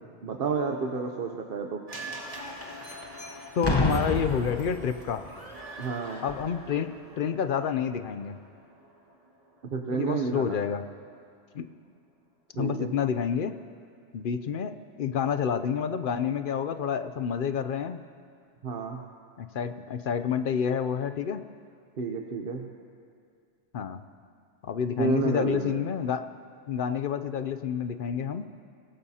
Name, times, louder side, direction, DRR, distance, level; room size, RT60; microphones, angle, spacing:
voice 1, 0.2-1.8 5.8-6.2 9.7-10.6 12.6-12.9 18.6-19.0 22.0-22.6 25.0-25.8, right 5 dB, 55° right, 2 dB, 0.9 m, -30 dB
sound 1, 1.9-10.2 10.5-10.6, right 1 dB, 30° right, 2.0 m, -44 dB
voice 2, 3.6-5.3 6.2-6.9 7.2-8.4 9.9-10.8 11.5-11.7 12.6-13.5 14.1-14.7 15.0-18.0 19.4-21.4 23.7-24.0 24.6-26.3 26.7-28.5, left 7 dB, 55° left, 10 dB, 0.6 m, -29 dB
Boom, 3.6-5.4 6.3-6.5, left 2 dB, 20° left, 1.0 m, -29 dB
24.0 x 17.0 x 2.8 m, 2.3 s
omnidirectional pair, 1.2 m